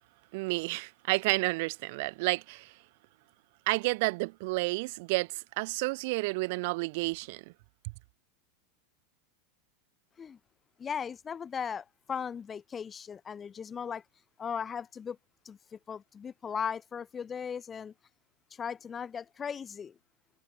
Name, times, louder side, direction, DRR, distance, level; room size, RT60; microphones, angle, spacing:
voice 1, 0.3-2.7 3.7-7.4, right 25 dB, 60° right, 1.1 m, -30 dB
voice 2, 10.8-14.0 14.4-15.2 15.4-17.9 18.5-20.0, left 7 dB, 25° left, 2.7 m, -37 dB
hypercardioid pair, 95°, 0 cm